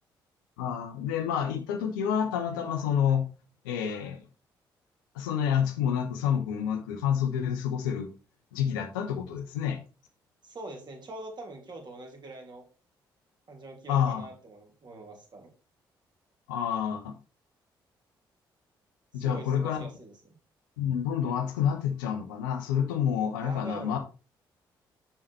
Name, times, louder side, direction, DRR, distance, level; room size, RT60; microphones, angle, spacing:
voice 1, 0.6-3.3 3.6-4.2 5.1-8.1 8.5-9.8 13.9-14.2 16.5-17.1 19.1-19.9 20.8-24.0, left 8 dB, 75° left, 5 dB, 1.0 m, -28 dB
voice 2, 10.4-12.6 13.5-15.5 19.1-20.4 23.4-24.0, right 2 dB, 40° right, 1 dB, 3.1 m, -43 dB
7.4 x 5.8 x 4.3 m, 0.33 s
figure-of-eight pair, 40°, 11 cm